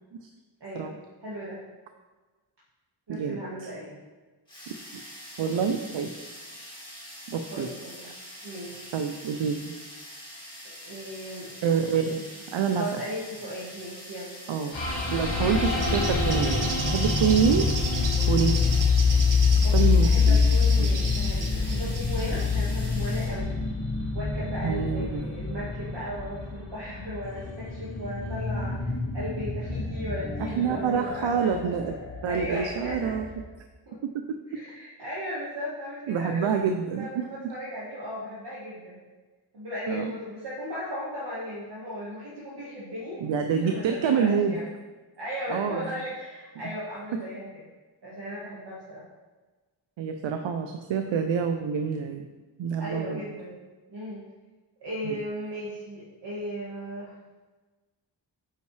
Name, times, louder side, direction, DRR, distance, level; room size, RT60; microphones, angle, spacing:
voice 1, 0.6-1.6 3.1-3.9 7.5-8.1 8.4-8.9 10.8-11.5 12.8-14.3 19.6-23.6 24.1-31.5 32.2-33.1 33.9-34.0 34.5-39.0 39.5-44.7 45.2-47.6 48.0-49.0 52.8-53.6 53.9-54.2 54.8-57.1, equal, 65° right, -8 dB, 1.8 m, -36 dB
sound 1, 4.5-23.4, equal, 10° left, 2.5 m, -44 dB
voice 2, 5.4-6.1 7.3-7.7 8.9-9.8 11.6-13.0 14.5-17.7 18.3-18.6 19.6-20.4 20.8-20.9 24.6-25.2 30.4-32.0 32.2-33.3 34.1-34.3 36.1-37.3 39.9-40.1 43.2-44.6 45.5-45.8 50.0-52.3 52.6-53.2 55.0-55.2, right 6 dB, 80° right, 6 dB, 0.6 m, -27 dB
sound 2, 14.7-33.4, left 4 dB, 85° left, 2.5 m, -26 dB
Bird, 15.6-22.5, right 4 dB, 45° right, 0.9 m, -36 dB
9.1 x 5.5 x 3.3 m, 1.3 s
wide cardioid pair, 105°, 44 cm